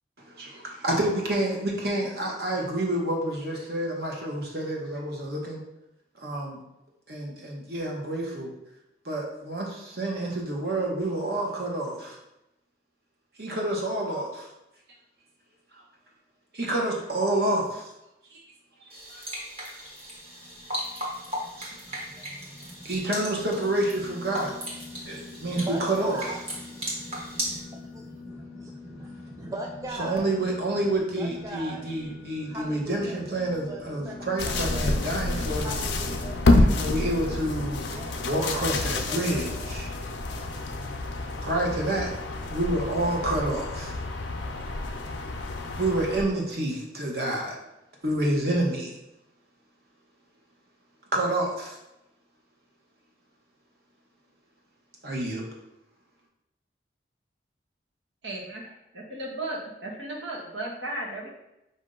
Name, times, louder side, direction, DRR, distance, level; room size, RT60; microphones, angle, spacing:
voice 1, 0.8-5.6 6.2-6.6 7.1-8.5 9.0-12.2 13.4-14.5 16.5-17.8 18.3-18.4 19.1-19.2 19.7-19.8 21.6-22.0 22.8-24.5 25.0-26.3 30.0-35.7 36.7-37.9 38.2-39.9 41.4-42.1 42.4-44.0 45.7-47.6 48.0-48.9 51.1-51.8 55.0-55.4, right 1 dB, 55° right, -1 dB, 1.0 m, -28 dB
sound 1, 18.9-27.6, equal, 35° right, 1.1 m, -37 dB
sound 2, 20.1-37.4, left 2 dB, ahead, 0.8 m, -45 dB
voice 2, 25.4-30.3 31.2-31.8 32.4-34.9 35.6-36.4 37.9-38.2 38.5-39.8 40.2-40.8, right 2 dB, 20° right, 1 dB, 0.3 m, -40 dB
sound 3, 34.4-46.2, left 2 dB, 80° left, 0.5 m, -28 dB
voice 3, 58.2-61.3, right 1 dB, 85° right, -1 dB, 1.1 m, -35 dB
5.2 x 2.7 x 3.7 m, 0.90 s
head